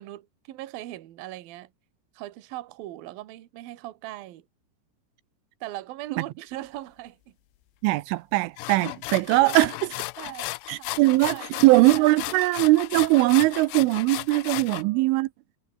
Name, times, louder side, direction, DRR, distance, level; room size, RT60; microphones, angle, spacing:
voice 1, 0.0-1.7 2.1-4.5 5.6-7.3 9.4-9.7 10.2-12.1 14.7-15.2, right 15 dB, 60° right, 2.8 m, -40 dB
voice 2, 7.8-9.7 10.7-15.3, right 20 dB, 85° right, 3.2 m, -20 dB
sound 1, 8.6-14.8, left 21 dB, 90° left, 2.4 m, -35 dB
omnidirectional pair, 5.6 m